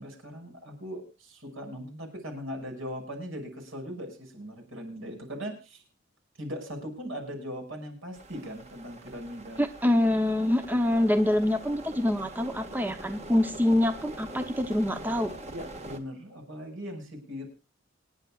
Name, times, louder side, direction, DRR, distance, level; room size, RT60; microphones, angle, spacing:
voice 1, 0.0-5.8 6.4-9.6 10.9-11.1 15.5-17.5, equal, 70° right, 4 dB, 6.1 m, -39 dB
sound 1, 8.1-16.0, right 1 dB, 30° right, 1.7 m, -44 dB
voice 2, 9.6-15.3, left 1 dB, 10° right, 8 dB, 0.8 m, -25 dB
26.5 x 10.5 x 2.4 m, 0.29 s
head